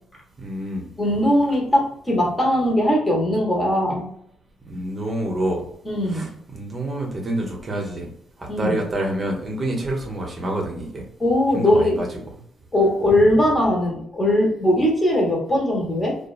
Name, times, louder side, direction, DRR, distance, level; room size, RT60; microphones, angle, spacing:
voice 1, 0.4-0.9 4.7-5.6 6.1-8.1 8.4-11.0 11.5-12.1, right 1 dB, 35° right, 0 dB, 0.7 m, -27 dB
voice 2, 1.0-4.1 5.8-6.3 8.5-8.8 11.2-12.0 12.7-16.2, left 1 dB, 20° left, -2 dB, 1.1 m, -20 dB
2.7 x 2.2 x 2.4 m, 0.67 s
cardioid pair, 90°, 0 cm